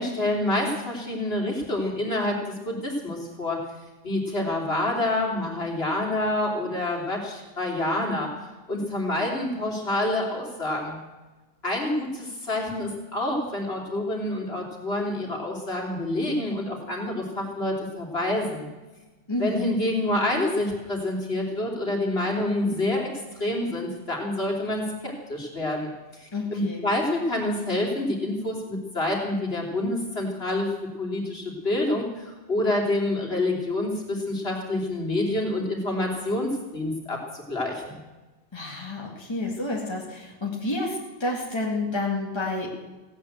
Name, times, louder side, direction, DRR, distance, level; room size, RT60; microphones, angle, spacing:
voice 1, 0.0-2.4 2.6-3.6 4.0-8.3 8.7-11.0 11.6-18.7 19.4-23.1 23.4-30.7 31.0-38.0, left 1 dB, 50° left, -1 dB, 3.4 m, -27 dB
voice 2, 19.3-19.8 26.3-26.9 38.5-42.7, left 2 dB, 20° left, -2 dB, 2.1 m, -30 dB
16.5 x 9.0 x 8.1 m, 1.2 s
omnidirectional pair, 1.3 m